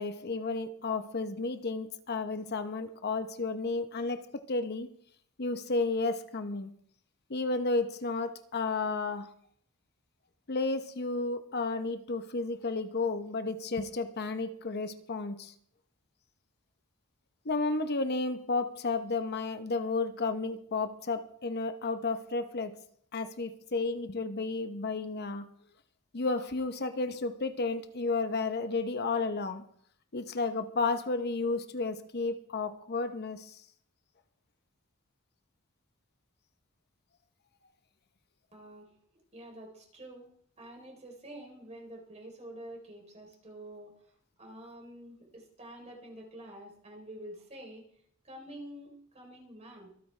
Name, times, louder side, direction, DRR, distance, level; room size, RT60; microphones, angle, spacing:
voice 1, 0.0-4.9 5.4-6.7 7.3-9.3 10.5-15.5 17.4-22.8 23.1-25.5 26.1-29.6 30.1-33.6, left 3 dB, 50° left, 9 dB, 0.8 m, -32 dB
voice 2, 38.5-38.9 39.3-40.3 40.6-44.1 44.4-47.8 48.2-49.9, right 1 dB, 30° right, 0 dB, 3.6 m, -47 dB
25.0 x 9.3 x 3.3 m, 0.63 s
head